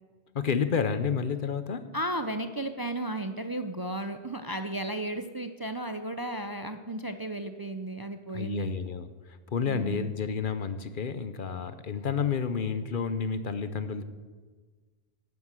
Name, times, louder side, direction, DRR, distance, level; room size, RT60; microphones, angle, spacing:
voice 1, 0.3-1.9 8.3-14.0, left 6 dB, 55° left, 12 dB, 0.9 m, -30 dB
voice 2, 1.9-8.8 9.7-10.2, right 1 dB, 25° right, 8 dB, 0.5 m, -34 dB
12.5 x 9.2 x 7.6 m, 1.4 s
omnidirectional pair, 1.1 m